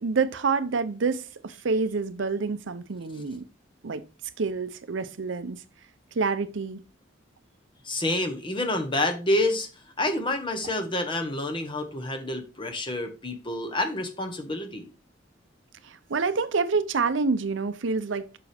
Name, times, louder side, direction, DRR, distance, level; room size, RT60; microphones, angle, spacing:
voice 1, 0.0-3.4 3.8-4.0 4.4-5.6 6.2-6.8 15.8-18.4, right 4 dB, 75° right, 0.6 m, -27 dB
voice 2, 7.8-9.7 10.0-14.9, left 1 dB, 25° left, 1.2 m, -28 dB
7.1 x 5.7 x 3.4 m
head